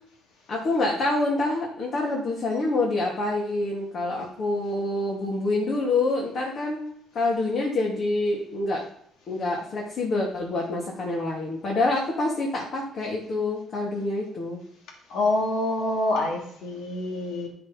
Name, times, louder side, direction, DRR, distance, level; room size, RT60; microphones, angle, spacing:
voice 1, 0.5-6.8 7.1-8.8 9.3-14.6, left 2 dB, 55° left, -2 dB, 2.7 m, -26 dB
voice 2, 15.1-17.5, left 2 dB, 80° left, 0 dB, 2.6 m, -26 dB
10.5 x 6.1 x 5.4 m, 0.69 s
cardioid pair, 85°, 0 cm